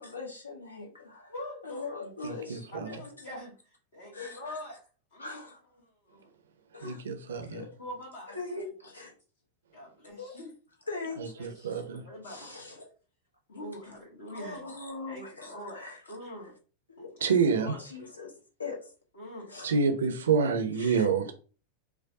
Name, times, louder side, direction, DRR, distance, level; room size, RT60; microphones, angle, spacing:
voice 1, 0.0-1.3 1.6-3.1 4.1-4.6 5.2-5.6 6.7-7.7 8.3-9.1 10.2-10.4 10.9-11.8 12.2-12.9 14.3-16.2 16.9-17.1 17.8-18.3 18.6-18.9 19.5-19.8 20.8-21.1, left 3 dB, 75° left, 0.9 m, -41 dB
voice 2, 1.3-2.1 2.7-4.8 5.1-5.2 6.1-6.3 7.8-8.4 9.7-10.5 11.4-11.5 11.8-12.6 13.5-14.6 15.1-15.8 16.1-16.5 17.0-17.3 17.6-17.8 19.2-19.5, left 1 dB, 60° left, 1.2 m, -43 dB
voice 3, 2.2-3.0 6.8-7.6 11.4-12.0 17.2-17.7 19.6-21.3, right 5 dB, 65° right, 0.5 m, -27 dB
4.6 x 2.2 x 2.6 m
figure-of-eight pair, 90°, 0 cm